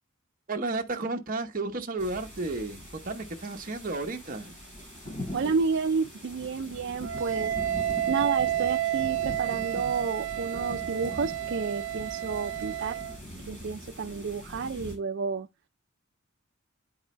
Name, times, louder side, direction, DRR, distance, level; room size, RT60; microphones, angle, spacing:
voice 1, 0.5-4.5, right 2 dB, 40° right, 1.0 m, -33 dB
sound 1, 2.0-15.0, left 1 dB, 40° left, 4.7 m, -42 dB
voice 2, 5.3-7.5 8.1-13.0 13.5-15.5, right 5 dB, 55° right, 0.4 m, -30 dB
Wind instrument woodwind instrument, 7.0-13.2, right 12 dB, 85° right, 0.7 m, -31 dB
9.3 x 4.8 x 3.1 m
head